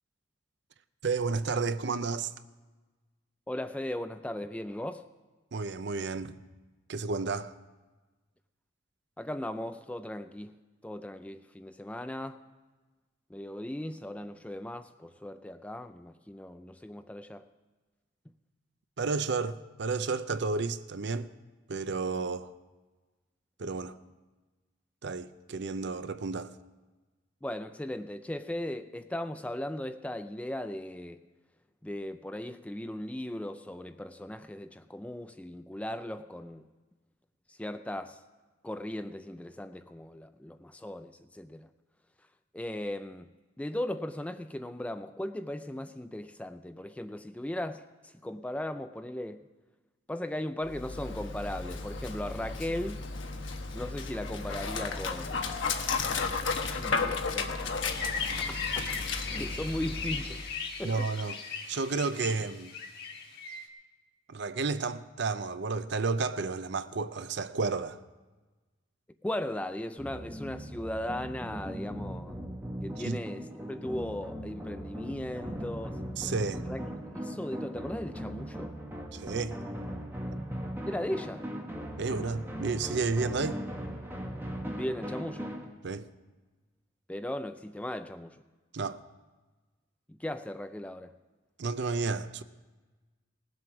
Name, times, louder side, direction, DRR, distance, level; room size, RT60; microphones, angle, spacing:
voice 1, 1.0-2.3 5.5-6.4 6.9-7.5 19.0-21.3 21.7-22.5 23.6-24.0 25.0-26.5 60.8-61.4 61.7-62.8 64.3-68.0 73.0-73.2 76.2-76.6 79.1-79.6 82.0-83.6 85.8-86.1 88.7-89.0 91.6-92.4, right 4 dB, 55° right, 0.5 m, -31 dB
voice 2, 3.5-5.1 9.2-10.5 10.8-12.4 13.3-17.5 27.4-31.2 31.8-36.6 37.5-38.2 38.6-41.7 42.5-49.5 50.1-53.0 53.7-55.4 56.7-57.7 58.4-58.9 59.3-60.4 60.8-61.1 69.2-72.4 72.8-76.0 76.7-78.8 80.9-81.5 84.7-85.6 87.1-88.4 90.1-91.1, left 1 dB, 5° left, 0.3 m, -37 dB
Dog, 50.6-60.6, left 4 dB, 65° left, 1.1 m, -34 dB
sound 1, 57.9-63.6, left 5 dB, 50° left, 1.4 m, -37 dB
sound 2, 70.0-85.6, equal, 10° right, 1.3 m, -39 dB
19.0 x 7.8 x 6.0 m
head